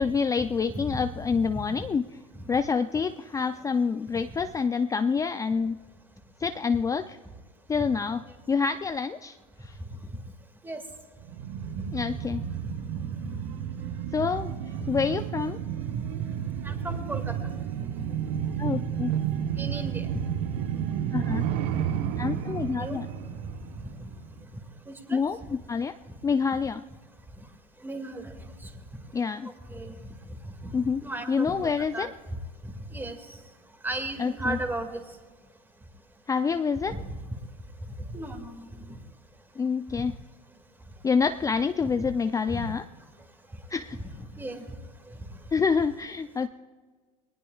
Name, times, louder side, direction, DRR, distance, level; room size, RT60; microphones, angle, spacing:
voice 1, 0.0-2.1 2.5-5.8 6.4-7.2 7.7-8.2 8.5-9.4 9.6-9.7 11.9-12.4 14.1-14.5 14.9-15.6 18.6-19.1 21.1-21.4 22.2-23.1 25.1-25.9 26.2-26.8 29.1-29.5 30.7-31.0 31.3-32.1 34.2-34.6 36.3-37.0 39.6-40.1 41.0-42.8 43.7-44.0 45.5-46.5, left 5 dB, 15° left, 9 dB, 0.5 m, -27 dB
sound 1, 11.2-24.4 24.8-24.9, right 9 dB, 65° right, 1.1 m, -32 dB
voice 2, 16.6-17.3 18.3-18.4 19.6-20.1 22.8-23.0 24.9-25.2 27.8-28.3 29.4-29.9 30.6-32.1 32.6-33.2 33.8-35.0 36.9-37.2 38.1-39.0 41.9-42.0 42.5-42.7 44.4-44.7, right 1 dB, 10° right, 5 dB, 2.1 m, -35 dB
22.0 x 19.0 x 2.4 m, 1.5 s
supercardioid pair, 100°, 19 cm